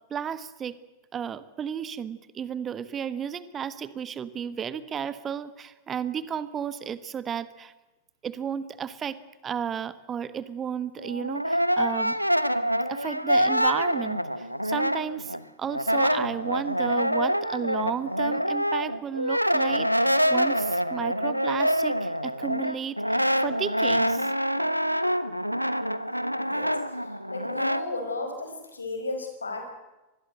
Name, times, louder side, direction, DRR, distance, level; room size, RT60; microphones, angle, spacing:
voice 1, 0.1-0.8 1.1-7.7 8.2-12.2 12.9-24.3, right 8 dB, 25° right, 15 dB, 1.3 m, -33 dB
Brass instrument, 11.0-15.4 15.7-27.8, equal, 90° right, 1.0 m, -26 dB
voice 2, 26.3-26.7 27.3-29.7, left 3 dB, 75° left, 6 dB, 5.2 m, -34 dB
24.5 x 21.0 x 7.8 m, 1.1 s
figure-of-eight pair, 90°, 0 cm